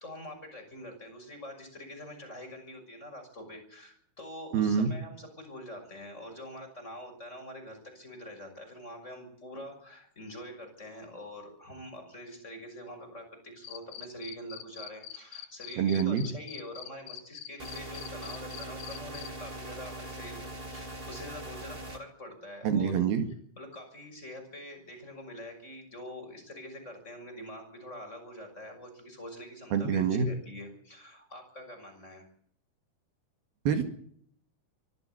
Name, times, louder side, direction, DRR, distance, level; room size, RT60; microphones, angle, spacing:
voice 1, 0.0-20.4 20.7-23.0 23.6-32.3, left 1 dB, 15° left, 4 dB, 6.4 m, -45 dB
voice 2, 4.5-4.9 15.8-16.2 22.6-23.3 29.7-30.3 33.7-33.8, right 7 dB, 70° right, 7 dB, 3.8 m, -26 dB
Cricket, 13.6-19.3, left 12 dB, 70° left, 3.0 m, -43 dB
sound 1, 17.6-22.0, right 1 dB, 20° right, 1.6 m, -41 dB
24.5 x 14.0 x 8.2 m, 0.64 s
omnidirectional pair, 4.6 m